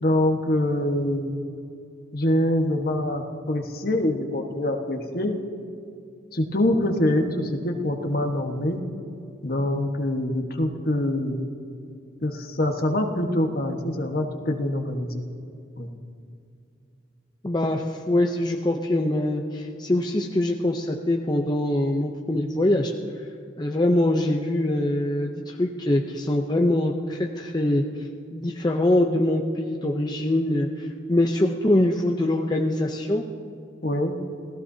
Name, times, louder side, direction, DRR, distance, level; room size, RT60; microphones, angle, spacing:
voice 1, 0.0-1.4 2.1-5.4 6.3-8.8 9.4-11.5 12.2-15.2 15.8-15.9 33.8-34.2, left 1 dB, 50° left, 3 dB, 1.3 m, -25 dB
voice 2, 17.4-22.9 23.6-27.8 28.3-33.2, left 1 dB, 20° left, 2 dB, 0.6 m, -23 dB
27.5 x 17.0 x 2.8 m, 2.4 s
head